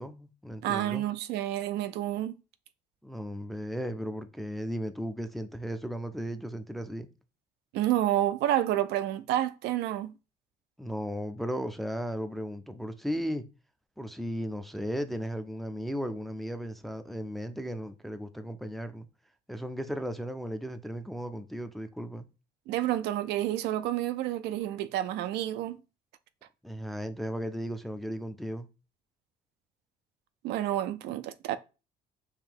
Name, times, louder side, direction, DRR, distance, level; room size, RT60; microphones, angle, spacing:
voice 1, 0.0-1.0 3.0-7.1 10.8-13.4 14.0-19.1 19.5-22.3 26.6-28.7, equal, ahead, 0.4 m, -35 dB
voice 2, 0.6-2.3 7.7-10.1 22.7-25.8 30.4-31.6, right 13 dB, 80° right, 0.4 m, -29 dB
4.8 x 2.6 x 3.6 m
cardioid pair, 110°, 17 cm